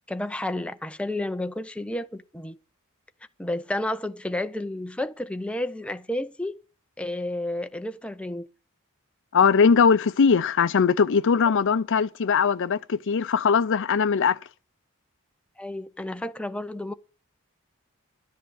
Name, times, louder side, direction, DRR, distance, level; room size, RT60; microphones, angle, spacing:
voice 1, 0.1-2.6 3.4-6.6 7.0-8.5 15.6-16.9, left 1 dB, 5° left, 0.5 m, -31 dB
voice 2, 9.3-14.4, left 6 dB, 60° left, 0.5 m, -20 dB
10.5 x 10.5 x 6.3 m
head